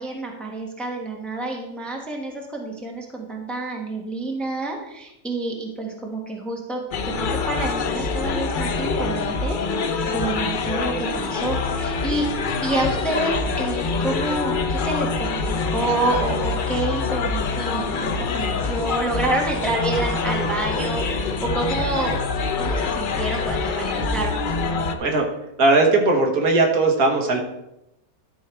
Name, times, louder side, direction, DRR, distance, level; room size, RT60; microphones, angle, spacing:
voice 1, 0.0-6.8 7.2-9.6 10.1-12.3 12.6-22.2 22.6-24.4, right 2 dB, ahead, 0 dB, 1.2 m, -28 dB
sound 1, 6.9-24.9, left 4 dB, 85° left, 0.4 m, -25 dB
voice 2, 25.6-27.4, right 3 dB, 65° right, 1 dB, 1.7 m, -18 dB
12.0 x 4.7 x 4.5 m, 0.86 s
omnidirectional pair, 1.7 m